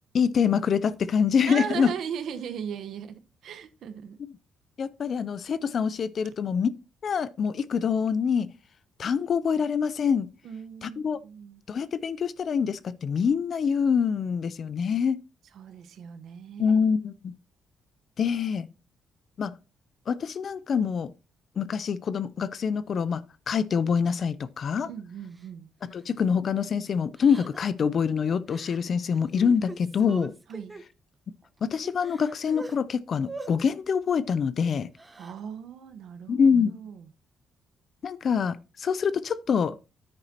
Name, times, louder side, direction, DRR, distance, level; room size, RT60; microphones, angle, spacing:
voice 1, 0.1-1.9 4.8-6.7 7.0-8.5 9.0-10.3 10.8-11.2 11.7-15.2 16.6-17.3 18.2-18.7 19.4-19.6 20.1-21.1 21.6-24.9 25.8-30.3 31.6-34.9 36.3-36.8 38.0-39.8, left 6 dB, 50° left, 0.5 m, -25 dB
voice 2, 1.5-4.2 10.4-11.6 15.5-16.8 24.8-25.7 30.5-30.7 35.2-37.1, right 7 dB, 70° right, 1.0 m, -38 dB
Crying sobbing, 25.3-25.5 25.9-26.2 27.2-27.8 28.5-28.8 29.1-30.8 31.4-31.5 31.8-32.7 33.2-33.5 34.8-35.4, right 2 dB, 20° right, 0.9 m, -42 dB
9.9 x 9.1 x 2.8 m
cardioid pair, 105°, 0 cm